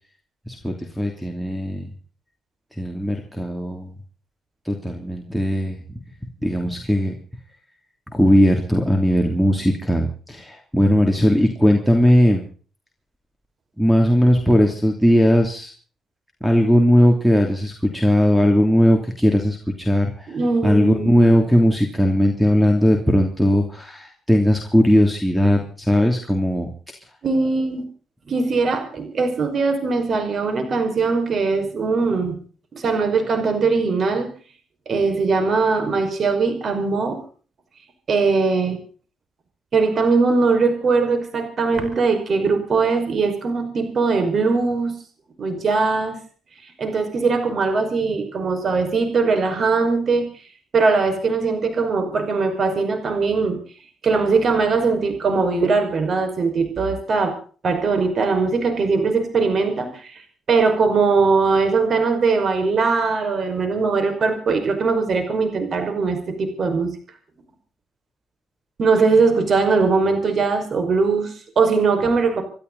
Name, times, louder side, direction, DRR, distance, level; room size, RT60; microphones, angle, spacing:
voice 1, 0.5-1.9 2.8-3.9 4.6-5.8 6.4-7.1 8.1-12.4 13.8-15.7 16.4-20.4 20.6-26.7, equal, ahead, 3 dB, 3.0 m, -18 dB
voice 2, 20.3-21.1 27.2-27.8 28.3-32.4 32.7-34.3 34.9-37.2 38.1-38.8 39.7-45.0 45.4-46.2 46.8-50.3 50.7-53.6 54.0-57.4 57.6-60.2 60.5-66.9 68.8-72.4, right 4 dB, 50° right, 7 dB, 5.5 m, -20 dB
27.5 x 12.5 x 4.1 m, 0.41 s
cardioid pair, 90°, 0 cm